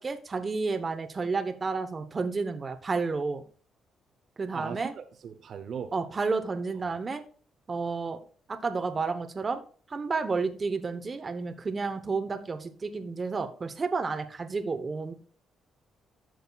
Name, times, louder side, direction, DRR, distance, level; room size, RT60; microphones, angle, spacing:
voice 1, 0.0-3.4 4.4-4.9 5.9-7.2 7.7-8.2 8.5-9.6 9.9-15.1, right 4 dB, 35° right, 8 dB, 0.9 m, -31 dB
voice 2, 4.5-5.9, right 7 dB, 60° right, 8 dB, 0.7 m, -39 dB
12.0 x 6.3 x 2.3 m, 0.42 s
cardioid pair, 90°, 0 cm